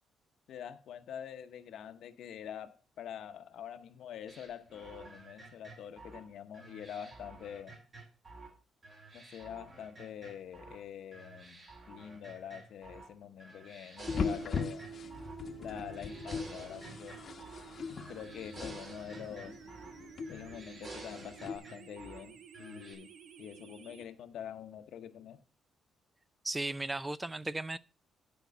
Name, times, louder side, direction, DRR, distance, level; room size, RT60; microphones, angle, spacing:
voice 1, 0.5-7.8 9.1-14.9 15.6-17.2 18.1-19.6 20.3-23.1 23.4-25.4, left 9 dB, 75° left, 0.9 m, -46 dB
sound 1, 4.3-8.5 8.8-10.8 11.1-13.1 13.4-15.4 15.7-17.7 18.0-20.0 20.3-22.2 22.5-22.9, right 3 dB, 40° right, 3.3 m, -51 dB
sound 2, 14.0-24.0, right 8 dB, 65° right, 0.8 m, -51 dB
sound 3, 14.1-21.6, left 5 dB, 50° left, 0.9 m, -40 dB
voice 2, 26.4-27.8, right 2 dB, 15° right, 0.4 m, -35 dB
11.0 x 4.6 x 5.2 m
cardioid pair, 90°, 0 cm